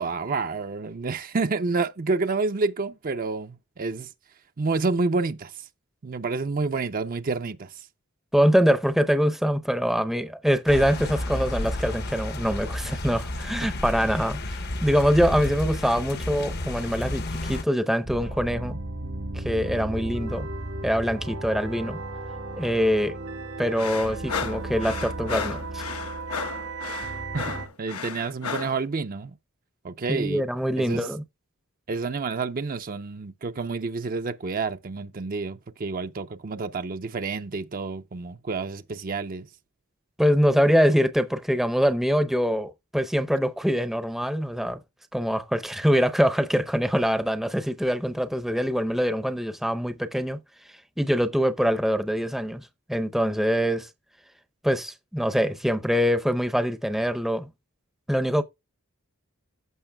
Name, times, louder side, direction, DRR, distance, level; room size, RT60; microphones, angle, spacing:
voice 1, 0.0-4.1 4.6-5.6 6.0-7.9 27.3-29.4 29.8-30.4 30.8-31.1 31.9-39.5, right 4 dB, 40° right, 0.5 m, -29 dB
voice 2, 8.3-18.8 19.3-20.5 20.8-22.0 22.6-23.2 23.6-25.8 30.1-31.2 40.2-44.8 45.1-50.4 51.0-53.9 54.6-57.5 58.1-58.4, equal, ahead, 0.6 m, -24 dB
sound 1, 10.7-17.6, left 1 dB, 45° left, 0.8 m, -31 dB
sound 2, 18.0-27.7, right 2 dB, 75° right, 1.7 m, -34 dB
sound 3, 23.8-28.8, left 5 dB, 85° left, 1.1 m, -33 dB
14.5 x 5.9 x 2.2 m
head